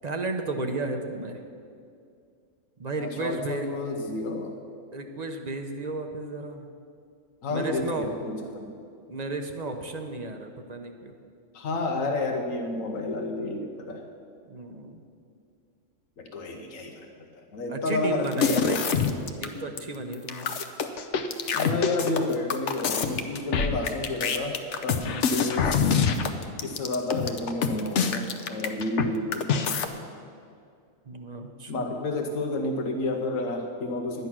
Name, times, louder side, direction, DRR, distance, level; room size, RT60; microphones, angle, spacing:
voice 1, 0.0-1.4 2.8-3.7 4.9-6.7 7.5-8.1 9.1-11.1 14.5-15.0 17.7-18.8 19.4-20.6 25.0-25.3 31.1-31.8, right 2 dB, 40° right, 5 dB, 0.7 m, -33 dB
voice 2, 3.0-4.6 7.4-8.7 11.5-14.0 16.2-17.1 17.4-18.7 21.5-26.0 26.6-29.7 31.7-34.3, left 2 dB, 80° left, 2 dB, 1.3 m, -31 dB
sound 1, 18.3-19.5 19.8-19.9 20.1-29.1 29.3-29.9, left 6 dB, 65° left, 1.0 m, -25 dB
11.0 x 9.4 x 6.0 m, 2.4 s
omnidirectional pair, 1.4 m